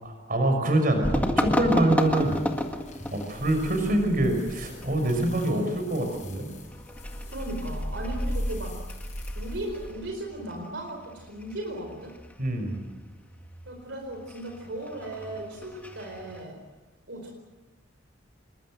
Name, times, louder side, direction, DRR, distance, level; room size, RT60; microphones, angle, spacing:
voice 1, 0.0-2.3 3.1-6.5 12.4-12.8, right 1 dB, 45° right, 5 dB, 5.7 m, -25 dB
sound 1, 1.0-16.4, equal, 10° left, 1.8 m, -34 dB
sound 2, 2.0-9.9, equal, 35° left, 6.4 m, -37 dB
voice 2, 7.3-8.8 9.3-12.1 13.6-16.6 17.1-17.3, right 1 dB, 65° right, 2 dB, 4.5 m, -36 dB
26.5 x 22.5 x 7.7 m, 1.2 s
head